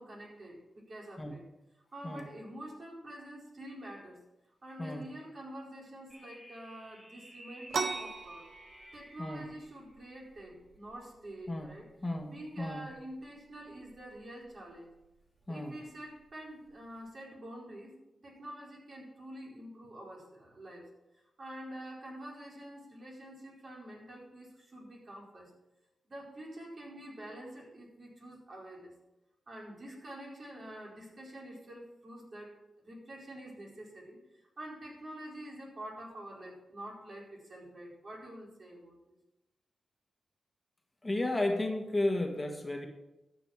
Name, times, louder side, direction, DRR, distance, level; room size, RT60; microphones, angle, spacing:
voice 1, 0.0-1.4 1.9-4.2 4.6-8.5 8.9-11.9 12.2-14.9 15.5-17.9 18.2-20.9 21.4-25.5 26.1-29.0 29.5-39.0, right 1 dB, 50° right, -2 dB, 4.5 m, -47 dB
sound 1, 6.1-9.6, right 1 dB, 25° right, 4.3 m, -52 dB
sound 2, 7.7-17.1, right 4 dB, 75° right, 1.1 m, -44 dB
voice 2, 12.0-12.8 15.5-15.7 41.0-42.9, left 1 dB, 20° left, 3 dB, 1.6 m, -33 dB
12.5 x 6.4 x 7.4 m, 0.98 s
cardioid pair, 80°, 0 cm